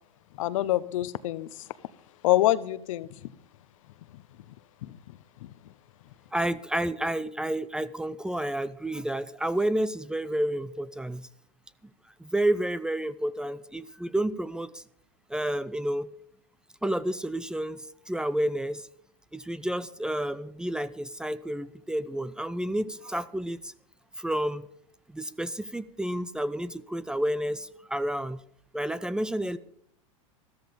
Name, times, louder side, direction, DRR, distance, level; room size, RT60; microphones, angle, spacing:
voice 1, 0.4-1.6 2.2-3.1 4.8-5.0 5.4-5.5, left 15 dB, 75° left, 16 dB, 0.8 m, -26 dB
voice 2, 6.3-11.3 12.2-14.8 15.3-16.1 16.8-18.9 19.3-23.7 24.2-24.7 25.1-28.4 28.7-29.6, right 1 dB, 5° right, 17 dB, 0.5 m, -30 dB
13.5 x 13.5 x 5.3 m, 0.65 s
hypercardioid pair, 115°, 17 cm